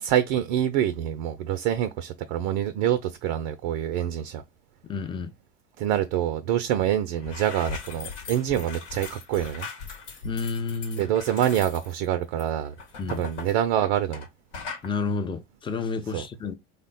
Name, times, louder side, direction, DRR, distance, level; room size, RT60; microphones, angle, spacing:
voice 1, 0.0-4.4 5.8-9.7 11.0-12.7 13.1-14.3 16.1-16.2, right 11 dB, 50° right, 0.4 m, -26 dB
voice 2, 4.9-5.3 10.2-11.1 13.0-13.3 14.8-16.5, left 4 dB, 15° left, 0.5 m, -30 dB
sound 1, 6.8-6.9 7.1-14.3 14.5-14.9, left 5 dB, 75° left, 1.2 m, -39 dB
3.3 x 2.1 x 3.9 m
figure-of-eight pair, 80°, 37 cm